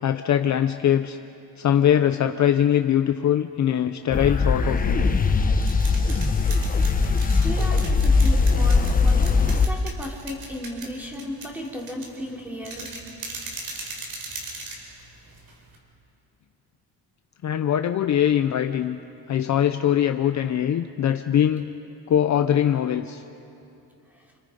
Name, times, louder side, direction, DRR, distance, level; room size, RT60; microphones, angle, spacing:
voice 1, 0.0-1.2 1.6-5.0 17.4-19.0 19.3-21.6 22.1-23.2, left 10 dB, 45° left, 7 dB, 0.7 m, -22 dB
sound 1, 4.1-9.7, left 4 dB, 20° left, 1.0 m, -20 dB
sound 2, 5.4-15.8, right 3 dB, 55° right, 5.1 m, -39 dB
voice 2, 7.3-12.9 24.1-24.2, equal, 5° right, -2 dB, 3.7 m, -35 dB
29.5 x 29.5 x 5.3 m, 2.7 s
cardioid pair, 155°, 41 cm